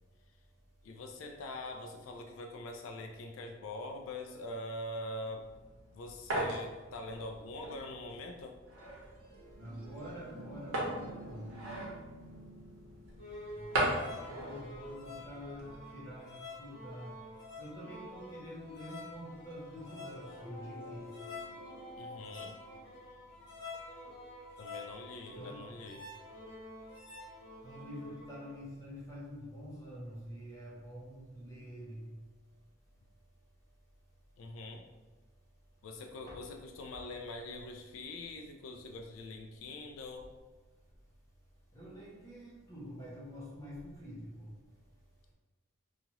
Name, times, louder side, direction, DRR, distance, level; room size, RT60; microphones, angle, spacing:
voice 1, 0.8-5.5 5.9-8.6 22.0-22.6 24.6-26.1 34.4-34.8 35.8-40.3, left 2 dB, 80° left, 3 dB, 0.3 m, -43 dB
sound 1, 5.4-15.8, right 1 dB, 90° right, 0.7 m, -39 dB
sound 2, 8.7-16.3 19.5-23.6, equal, 45° right, 0.7 m, -53 dB
voice 2, 9.6-11.6 13.5-17.2 17.6-21.1 25.3-25.7 27.6-32.1 36.3-36.4 41.7-44.5, equal, 15° left, -6 dB, 0.8 m, -47 dB
sound 3, 13.2-28.6, left 2 dB, 60° left, 1.0 m, -48 dB
2.8 x 2.4 x 2.9 m, 1.3 s
head